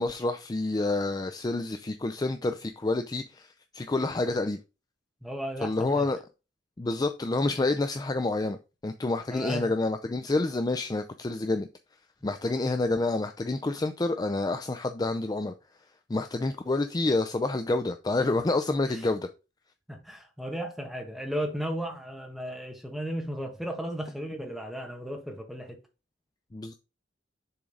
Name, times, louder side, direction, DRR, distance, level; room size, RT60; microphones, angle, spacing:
voice 1, 0.0-4.6 5.6-6.2 6.8-8.6 8.8-11.7 12.2-15.5 16.1-19.3 26.5-26.7, left 2 dB, 20° left, 0.4 m, -28 dB
voice 2, 5.2-6.1 9.3-9.7 18.9-19.0 19.9-25.8, equal, ahead, 1.4 m, -35 dB
7.0 x 3.8 x 5.0 m
head